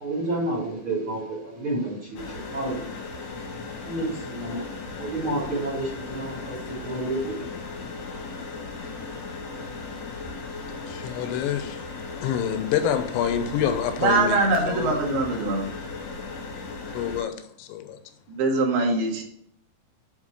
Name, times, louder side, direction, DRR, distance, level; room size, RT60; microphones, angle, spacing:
voice 1, 0.0-3.4 3.7-8.4, right 1 dB, 40° right, 2.1 m, -31 dB
sound 1, 2.1-17.2, left 3 dB, 60° left, 2.0 m, -37 dB
voice 2, 10.9-11.8 12.2-14.4 14.7-15.0 16.9-18.0, left 9 dB, 80° left, 3.0 m, -27 dB
voice 3, 14.0-15.7 18.3-19.2, right 3 dB, 65° right, 3.5 m, -23 dB
9.0 x 4.3 x 4.9 m
omnidirectional pair, 5.3 m